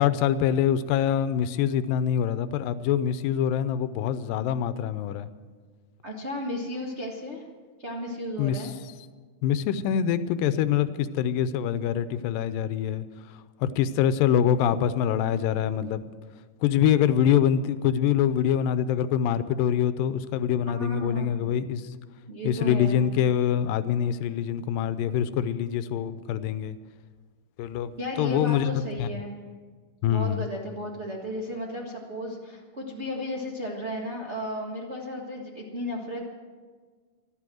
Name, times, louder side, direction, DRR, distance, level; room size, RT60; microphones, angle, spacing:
voice 1, 0.0-5.3 8.4-8.7 9.4-13.1 13.6-16.0 16.6-21.8 22.4-26.8 27.6-29.1 30.0-30.5, left 9 dB, 80° left, 13 dB, 2.3 m, -25 dB
voice 2, 6.0-7.4 7.8-8.7 20.7-21.5 22.3-23.1 28.0-29.3 30.1-36.3, left 1 dB, 55° right, -2 dB, 0.7 m, -34 dB
14.5 x 12.5 x 7.7 m, 1.5 s
omnidirectional pair, 4.2 m